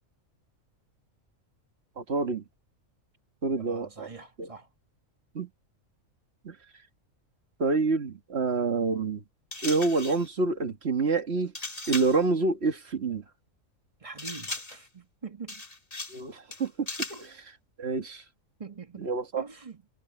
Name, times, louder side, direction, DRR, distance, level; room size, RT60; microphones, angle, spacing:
voice 1, 2.0-2.4 3.4-4.1 4.4-4.5 5.3-5.5 6.4-6.6 7.6-9.2 9.6-11.5 11.9-13.2 16.1-16.9 17.8-18.2 19.0-19.4, right 3 dB, 50° right, 2.0 m, -27 dB
voice 2, 3.5-4.7 14.0-15.6 17.1-17.2 18.6-19.1 19.4-19.8, right 4 dB, 25° right, 1.5 m, -43 dB
sound 1, 9.5-10.3 11.5-12.2 14.2-14.9 15.5-16.2 16.5-17.3, left 2 dB, 30° left, 2.1 m, -37 dB
omnidirectional pair, 1.4 m